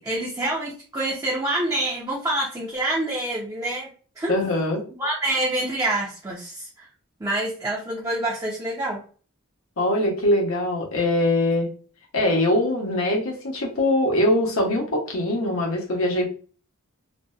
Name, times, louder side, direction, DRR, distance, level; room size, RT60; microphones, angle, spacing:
voice 1, 0.0-3.9 4.2-4.4 5.0-6.9 7.2-9.0, right 1 dB, 15° right, -5 dB, 0.4 m, -26 dB
voice 2, 4.3-4.8 9.8-11.7 12.1-16.3, left 1 dB, 70° left, -1 dB, 0.7 m, -22 dB
2.5 x 2.1 x 2.3 m, 0.41 s
head